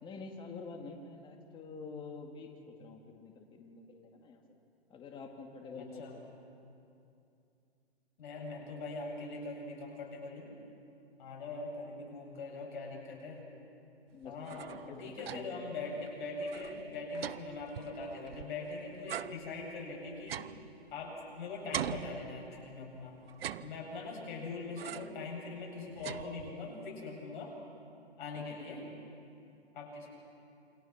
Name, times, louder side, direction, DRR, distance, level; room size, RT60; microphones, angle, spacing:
voice 1, 0.0-4.4 4.9-6.2 11.8-12.0 14.1-15.7 23.4-23.5 28.4-28.5 28.8-28.9, left 4 dB, 15° left, 2 dB, 2.1 m, -48 dB
voice 2, 8.2-10.5 11.2-13.4 14.2-14.7 15.0-20.4 20.9-23.2 23.6-27.5 28.2-28.8 29.7-30.1, left 3 dB, 50° left, -1 dB, 7.7 m, -42 dB
sound 1, 14.2-15.7 16.0-16.1 16.4-18.6 19.1-21.3 21.7-22.8 23.3-24.2 24.8-25.3 25.6-26.8, right 10 dB, 65° right, 0.8 m, -43 dB
28.5 x 24.0 x 6.0 m, 2.6 s
hypercardioid pair, 145°, 33 cm